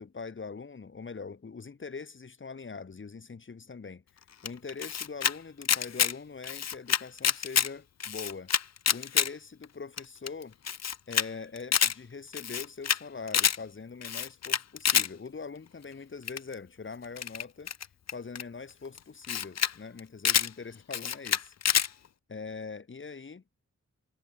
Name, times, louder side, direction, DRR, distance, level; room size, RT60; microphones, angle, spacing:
voice 1, 0.0-4.0 4.4-8.5 8.9-10.6 11.1-17.7 18.1-21.5 22.3-23.4, left 4 dB, 40° left, 2.3 m, -42 dB
Camera, 4.5-5.3 5.6-6.1 6.4-7.7 8.0-9.3 9.6-9.7 10.0-10.1 10.3-10.4 10.7-11.3 11.6-11.9 12.3-13.0 13.3-13.6 14.0-15.1 16.3-16.5 17.2-18.4 19.0-19.1 19.2-19.7 20.0-20.5 20.9-21.9, left 8 dB, 60° left, 0.8 m, -27 dB
wide cardioid pair, 175°, 30 cm